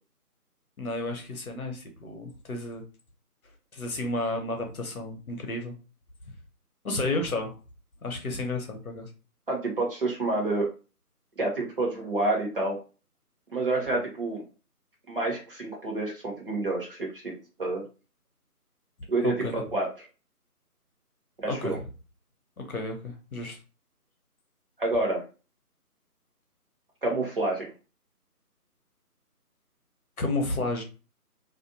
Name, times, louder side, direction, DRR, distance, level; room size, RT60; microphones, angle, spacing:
voice 1, 0.8-2.8 3.7-5.7 6.8-7.5 8.0-9.1 19.2-19.6 21.4-21.9 22.6-23.6 30.2-30.8, left 2 dB, 65° left, 4 dB, 0.9 m, -32 dB
voice 2, 9.5-10.7 11.4-12.8 13.5-14.4 15.1-17.8 19.1-20.1 21.4-21.8 24.8-25.2 27.0-27.7, right 2 dB, 35° right, -2 dB, 0.8 m, -28 dB
2.5 x 2.2 x 2.5 m, 0.33 s
figure-of-eight pair, 160°, 47 cm